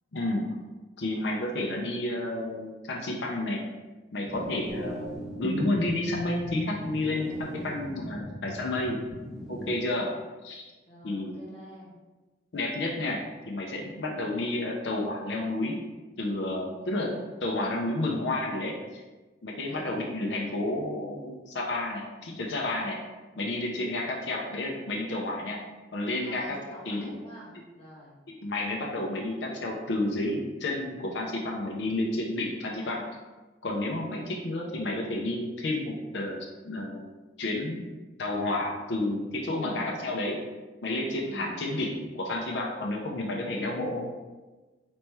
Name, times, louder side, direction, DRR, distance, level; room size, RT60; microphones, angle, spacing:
voice 1, 0.1-0.5 1.0-3.6 4.1-5.1 5.4-9.0 9.5-10.1 10.4-10.7 11.0-11.4 12.5-15.8 16.2-19.0 19.4-23.0 23.4-25.6 25.9-27.1 27.5-27.6 28.3-33.0 33.6-37.1 37.4-37.9 38.2-40.4 40.8-44.0, left 1 dB, 80° left, -1 dB, 0.6 m, -31 dB
sound 1, 4.3-9.8, left 1 dB, ahead, 0.5 m, -39 dB
voice 2, 7.6-8.1 10.9-11.9 16.8-17.1 19.7-19.9 26.2-28.1 34.0-34.4 39.6-39.9 41.2-41.5 43.5-43.8, equal, 35° left, -7 dB, 1.4 m, -46 dB
4.1 x 3.1 x 3.3 m, 1.2 s
head